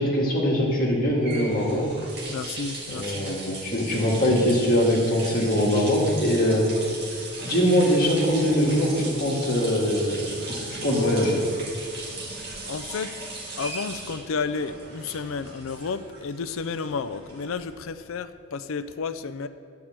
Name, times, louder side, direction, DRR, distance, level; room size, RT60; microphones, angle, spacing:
voice 1, 0.0-1.9 2.9-6.7 7.4-10.2 10.5-11.4, equal, 40° left, -3 dB, 1.7 m, -22 dB
Tub Faucet, 0.9-17.9, right 2 dB, 45° right, 1.8 m, -38 dB
voice 2, 2.3-3.6 12.7-13.2 13.6-19.5, left 5 dB, 65° left, 12 dB, 0.4 m, -32 dB
10.0 x 4.7 x 7.5 m, 2.4 s
head